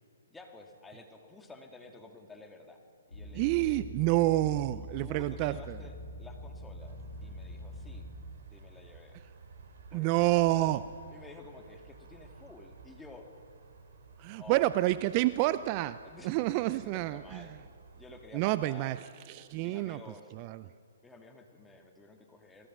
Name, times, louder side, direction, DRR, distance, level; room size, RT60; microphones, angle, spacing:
voice 1, 0.3-2.8 3.1-3.8 5.0-8.1 8.5-9.2 9.9-10.7 11.1-13.3 14.4-14.7 16.0-16.4 16.7-17.6 17.9-19.0 19.6-20.3 21.0-22.7, left 3 dB, 5° left, 2 dB, 2.5 m, -52 dB
sound 1, 3.1-8.1, left 1 dB, 80° left, 7.6 m, -44 dB
voice 2, 3.3-5.8 9.9-10.8 14.2-17.4 18.3-19.0 19.3-20.0 20.4-20.6, right 16 dB, 35° right, 16 dB, 0.5 m, -28 dB
sound 2, 6.8-18.3, right 4 dB, 55° right, 3.1 m, -54 dB
27.0 x 19.0 x 6.3 m, 2.3 s
figure-of-eight pair, 130°, 0 cm